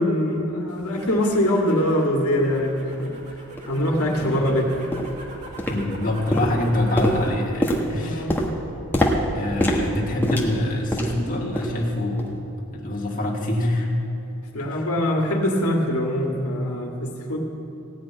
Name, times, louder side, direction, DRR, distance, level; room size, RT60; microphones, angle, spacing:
voice 1, 0.0-3.1 3.7-4.7 8.0-8.3 14.5-17.4, left 1 dB, 85° left, 0 dB, 2.0 m, -23 dB
sound 1, 0.7-7.4 7.8-8.3, right 1 dB, 30° right, 1.9 m, -42 dB
sound 2, 2.9-3.0 3.6-3.7 4.2-4.4 4.9-5.2 5.6-6.0 6.3-11.3 11.6-11.8 12.2-12.4 12.9-13.0, equal, 10° left, 1.2 m, -25 dB
voice 2, 5.7-8.3 9.3-12.3 12.7-13.9 14.6-14.9, left 1 dB, 35° left, -3 dB, 1.6 m, -25 dB
16.5 x 6.2 x 9.3 m, 2.9 s
head